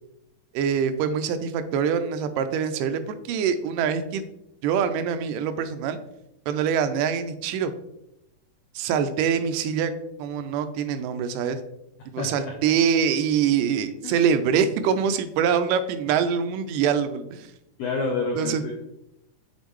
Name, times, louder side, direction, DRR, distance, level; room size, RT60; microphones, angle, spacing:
voice 1, 0.5-4.2 4.6-6.0 6.5-7.7 8.8-9.9 10.2-11.6 12.1-17.5 18.4-18.6, right 7 dB, 90° right, 10 dB, 2.2 m, -24 dB
voice 2, 12.2-12.6 14.0-14.2 17.8-18.7, left 3 dB, 85° left, 1 dB, 1.4 m, -28 dB
7.2 x 4.4 x 3.1 m, 0.84 s
omnidirectional pair, 3.7 m